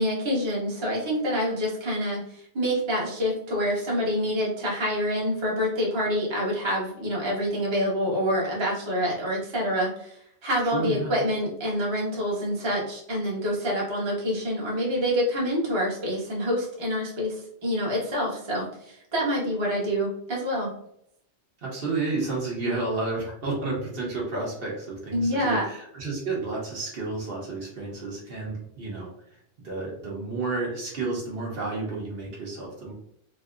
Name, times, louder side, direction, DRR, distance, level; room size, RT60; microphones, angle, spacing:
voice 1, 0.0-20.7 25.1-25.7, equal, 25° right, -3 dB, 0.8 m, -27 dB
voice 2, 10.7-11.1 21.6-32.9, right 3 dB, 55° right, -4 dB, 1.1 m, -31 dB
3.2 x 2.7 x 2.4 m, 0.71 s
omnidirectional pair, 1.2 m